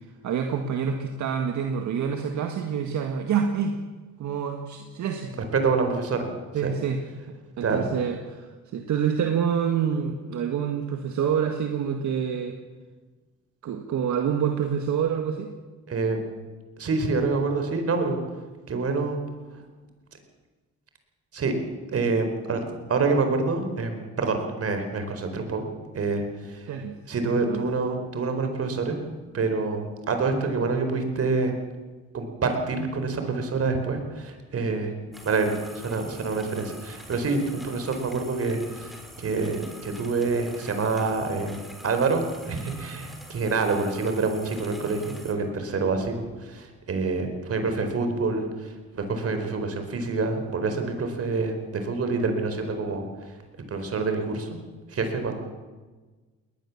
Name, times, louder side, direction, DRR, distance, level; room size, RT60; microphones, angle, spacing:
voice 1, 0.2-3.8 4.2-5.3 6.5-12.6 13.6-15.5 26.7-27.0 27.2-27.6, right 7 dB, 70° right, 5 dB, 1.9 m, -27 dB
voice 2, 5.5-6.3 6.6-6.7 7.6-7.8 15.9-16.2 16.8-18.2 18.7-19.2 21.3-21.5 21.9-22.6 22.9-25.7 25.9-26.6 27.1-28.9 29.3-31.5 32.1-34.9 35.2-38.9 39.2-41.6 41.8-53.0 53.7-54.6 54.9-55.4, right 4 dB, 50° right, 6 dB, 4.5 m, -27 dB
sound 1, 35.1-45.3, equal, ahead, 4.1 m, -45 dB
20.5 x 20.0 x 7.4 m, 1.3 s
cardioid pair, 90°, 30 cm